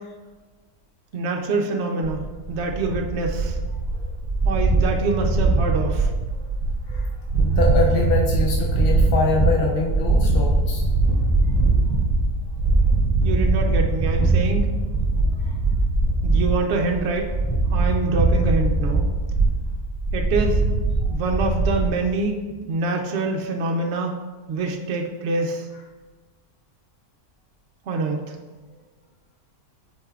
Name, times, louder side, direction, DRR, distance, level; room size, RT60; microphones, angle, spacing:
voice 1, 1.1-3.6 4.4-6.1 13.2-14.7 16.2-17.3 17.7-19.1 20.1-20.6 21.1-24.1 24.5-25.7 27.9-28.3, right 3 dB, 60° right, 1 dB, 0.7 m, -25 dB
sound 1, 2.0-21.9, right 2 dB, 5° left, 1.8 m, -21 dB
voice 2, 7.4-10.8 15.4-15.5, left 2 dB, 50° left, -1 dB, 0.7 m, -24 dB
8.8 x 5.4 x 2.4 m, 1.3 s
omnidirectional pair, 1.7 m